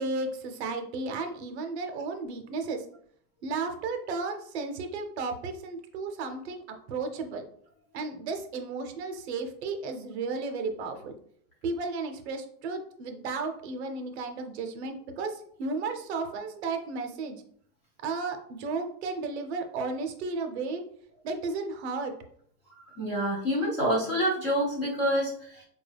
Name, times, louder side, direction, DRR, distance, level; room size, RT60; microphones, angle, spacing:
voice 1, 0.0-2.9 3.4-6.6 6.9-7.4 7.9-11.1 11.6-17.4 18.0-20.8 21.2-22.1, right 3 dB, 45° right, 5 dB, 0.6 m, -33 dB
voice 2, 22.9-25.7, equal, 20° left, -5 dB, 0.4 m, -27 dB
4.4 x 2.3 x 3.3 m, 0.62 s
supercardioid pair, 170°, 47 cm